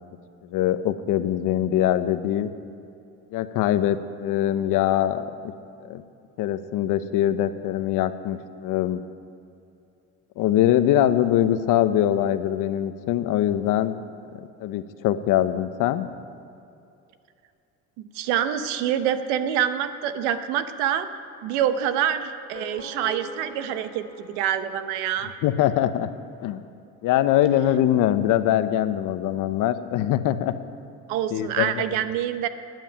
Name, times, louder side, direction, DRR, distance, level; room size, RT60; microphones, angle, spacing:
voice 1, 0.4-2.5 3.3-5.5 5.8-6.0 6.4-9.0 10.4-14.0 14.3-16.1 25.4-26.1 26.4-26.6 27.0-30.5 31.3-31.9, left 12 dB, 65° left, 11 dB, 1.0 m, -23 dB
voice 2, 18.1-21.1 21.4-25.3 31.1-32.5, right 10 dB, 85° right, 11 dB, 1.0 m, -26 dB
sound 1, 22.3-25.5, left 2 dB, 15° left, 3.4 m, -42 dB
12.5 x 9.3 x 9.2 m, 2.6 s
supercardioid pair, 90°, 34 cm